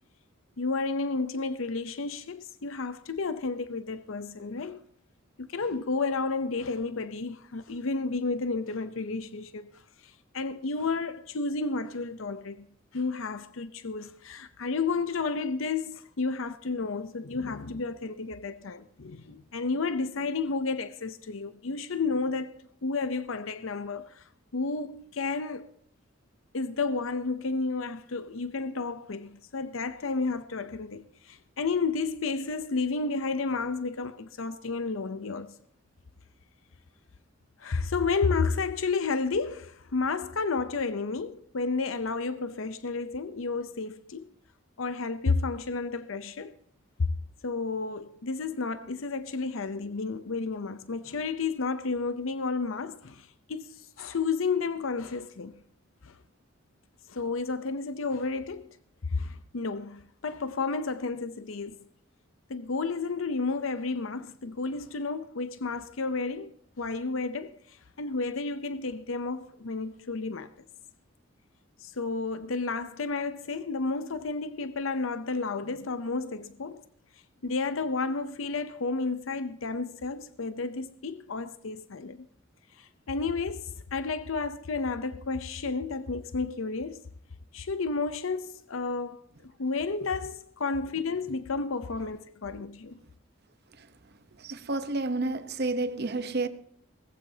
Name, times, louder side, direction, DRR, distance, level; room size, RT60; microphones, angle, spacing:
voice 1, 0.6-4.8 5.4-9.7 10.0-12.6 12.9-25.7 26.5-35.5 37.6-44.3 44.8-46.6 47.0-47.1 47.4-55.6 56.0-56.2 57.1-58.8 59.1-61.8 62.5-70.5 71.8-76.8 77.4-82.3 82.8-87.0 87.5-89.2 89.6-93.0, left 4 dB, 80° left, 0.7 m, -31 dB
voice 2, 94.4-96.5, right 2 dB, 55° right, 1.0 m, -30 dB
19.5 x 15.0 x 2.8 m
head